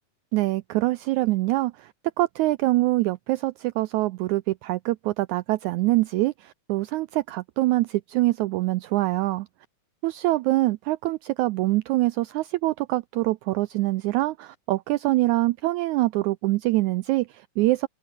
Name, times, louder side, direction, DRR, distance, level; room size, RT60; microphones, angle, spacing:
voice 1, 0.3-9.5 10.0-17.9, right 19 dB, 85° right, 1.7 m, -24 dB
omnidirectional pair, 3.9 m